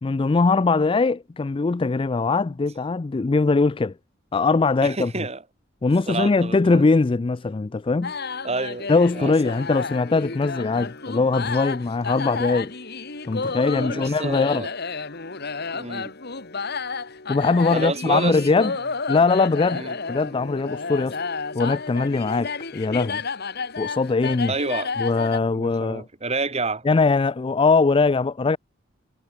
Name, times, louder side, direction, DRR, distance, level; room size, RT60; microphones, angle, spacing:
voice 1, 0.0-3.9 4.3-5.1 5.8-8.1 8.9-12.7 13.3-14.7 17.3-18.7 19.1-21.2 21.5-23.2 23.8-24.5 25.0-26.0 26.8-28.6, left 3 dB, 25° left, 0.4 m, -21 dB
voice 2, 4.8-5.4 6.1-6.8 8.4-9.5 13.7-14.7 15.7-16.1 17.7-18.8 19.7-20.0 24.5-24.9 25.6-26.9, right 3 dB, 30° right, 2.8 m, -29 dB
sound 1, 8.0-25.4, left 4 dB, 50° left, 2.2 m, -31 dB
head